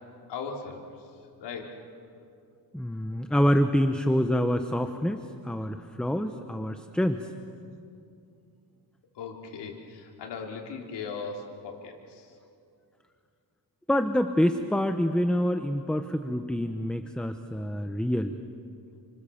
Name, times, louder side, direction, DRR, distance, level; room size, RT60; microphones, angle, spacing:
voice 1, 0.3-0.8 1.4-1.7 9.2-12.3, left 5 dB, 90° left, 1 dB, 3.7 m, -38 dB
voice 2, 2.7-7.3 13.9-18.4, equal, ahead, 8 dB, 0.9 m, -26 dB
30.0 x 25.5 x 7.2 m, 2.5 s
cardioid pair, 115°, 40 cm